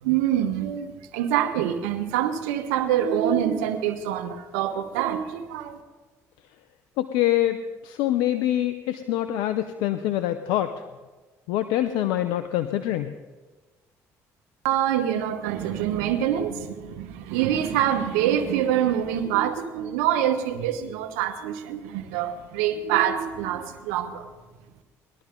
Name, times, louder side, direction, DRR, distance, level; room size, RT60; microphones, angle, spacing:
voice 1, 0.0-5.8 14.6-24.3, right 10 dB, 85° right, 9 dB, 1.0 m, -25 dB
voice 2, 7.0-10.7 11.5-13.1, left 13 dB, 80° left, 10 dB, 0.5 m, -25 dB
19.5 x 12.0 x 3.7 m, 1.3 s
supercardioid pair, 65°, 8 cm